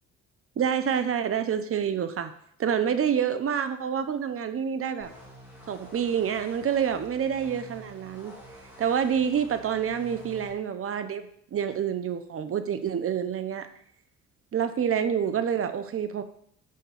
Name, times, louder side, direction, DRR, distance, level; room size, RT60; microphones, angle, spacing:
voice 1, 0.6-2.3 2.6-5.1 5.7-8.3 8.8-11.3 11.5-13.7 14.5-16.2, right 8 dB, 45° right, 9 dB, 0.9 m, -27 dB
sound 1, 5.0-10.5, equal, 5° right, 3.2 m, -48 dB
6.6 x 5.3 x 7.0 m, 0.66 s
cardioid pair, 90°, 30 cm